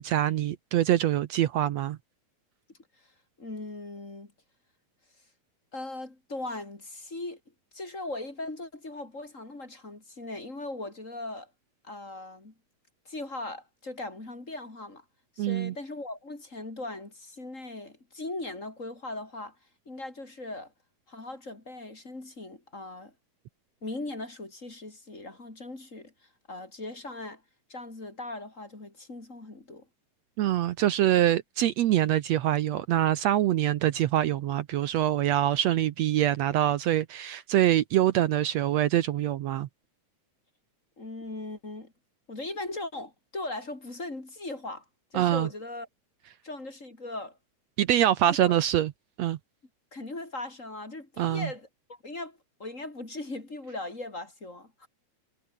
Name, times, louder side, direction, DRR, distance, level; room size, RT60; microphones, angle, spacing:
voice 1, 0.0-2.0 15.4-15.7 30.4-39.7 45.1-45.5 47.8-48.9 49.2-49.4 51.2-51.5, right 12 dB, 70° right, 2.0 m, -24 dB
voice 2, 3.4-4.3 5.7-7.4 7.7-11.5 11.8-12.5 13.1-15.0 15.4-19.6 19.9-20.7 21.1-23.1 23.8-26.1 26.5-27.4 27.7-29.9 41.0-41.9 42.3-44.8 45.1-45.9 46.4-47.4 48.3-48.5 49.9-54.9, left 2 dB, 25° left, 4.0 m, -39 dB
omnidirectional pair, 3.4 m